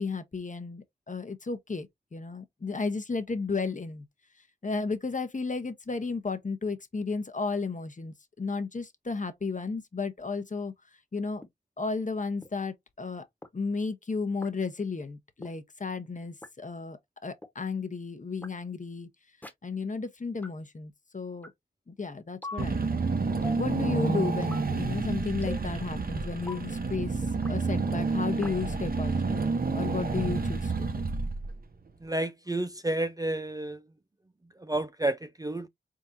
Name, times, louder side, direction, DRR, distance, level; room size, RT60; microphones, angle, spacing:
voice 1, 0.0-4.0 4.6-10.7 11.1-11.4 11.8-13.2 13.5-17.0 17.2-19.1 19.6-21.5 21.9-23.1 23.6-29.4 29.7-30.9, left 4 dB, 40° left, 0.9 m, -33 dB
sound 1, 11.4-11.5 12.4-12.5 13.4-13.5 14.4-14.5 15.4-15.5 16.4-16.5 17.4-17.5 18.4-18.5 19.4-19.5 20.4-20.5 21.4-21.5 22.4-22.6 23.4-23.7 24.4-24.7 25.4-25.7 26.4-26.6 27.4-27.6 28.4-28.6, left 3 dB, 10° left, 1.2 m, -41 dB
Car / Engine, 22.6-31.7, right 4 dB, 45° right, 0.9 m, -29 dB
voice 2, 32.0-33.8 34.6-35.7, right 1 dB, 20° right, 0.5 m, -30 dB
4.2 x 3.7 x 2.6 m
cardioid pair, 60°, 20 cm